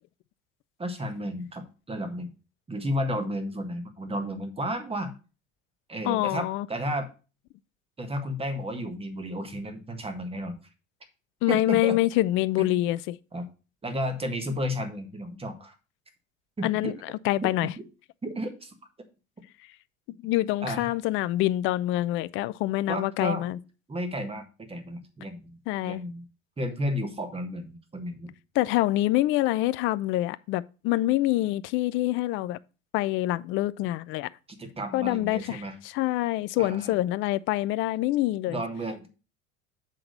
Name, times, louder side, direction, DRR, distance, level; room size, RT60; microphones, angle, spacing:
voice 1, 0.8-2.3 2.7-5.1 5.9-7.1 8.0-10.6 11.5-12.0 12.6-12.9 13.3-13.5 13.8-15.8 16.6-17.0 17.4-17.5 18.2-18.8 20.6-20.9 22.9-23.5 23.9-24.4 24.7-26.2 26.6-28.3 34.6-35.8 36.6-36.9 38.5-39.1, equal, 15° right, 1.6 m, -32 dB
voice 2, 6.0-6.7 11.4-13.2 16.6-17.7 20.2-23.6 25.7-26.0 28.5-32.6 32.9-34.3 34.9-38.6, left 16 dB, 35° left, 0.4 m, -26 dB
7.4 x 3.9 x 6.5 m
figure-of-eight pair, 70°, 40 cm